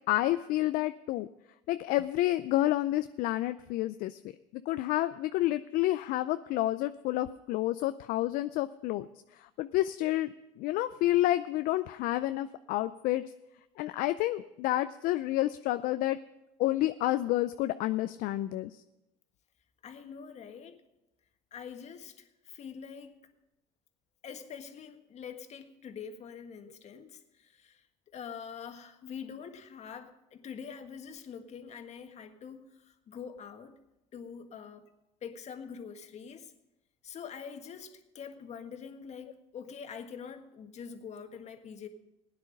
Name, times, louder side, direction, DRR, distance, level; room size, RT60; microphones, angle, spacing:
voice 1, 0.1-1.3 1.7-4.2 4.5-9.1 9.3-13.2 13.8-16.2 16.6-18.8, left 15 dB, 65° left, 12 dB, 0.5 m, -29 dB
voice 2, 19.8-20.8 21.5-23.2 24.2-33.8 34.1-34.9 35.2-36.5 37.0-41.9, left 7 dB, 45° left, 7 dB, 1.6 m, -45 dB
16.5 x 9.7 x 5.3 m, 0.93 s
supercardioid pair, 85°, 16 cm